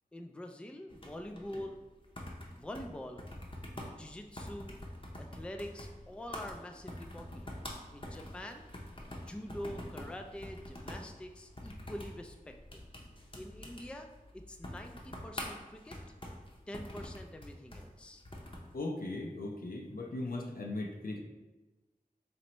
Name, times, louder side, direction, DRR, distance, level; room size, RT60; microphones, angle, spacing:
voice 1, 0.1-1.8 2.5-3.2 4.0-4.8 5.1-7.6 7.9-8.7 9.2-12.8 13.4-14.1 14.3-16.0 16.7-18.2, left 1 dB, 5° left, 4 dB, 0.3 m, -45 dB
sound 1, 0.9-18.7, left 1 dB, 35° left, 0.7 m, -46 dB
voice 2, 18.7-21.2, left 2 dB, 75° left, 1 dB, 0.6 m, -38 dB
4.3 x 3.1 x 3.0 m, 1.1 s
wide cardioid pair, 50°, 15 cm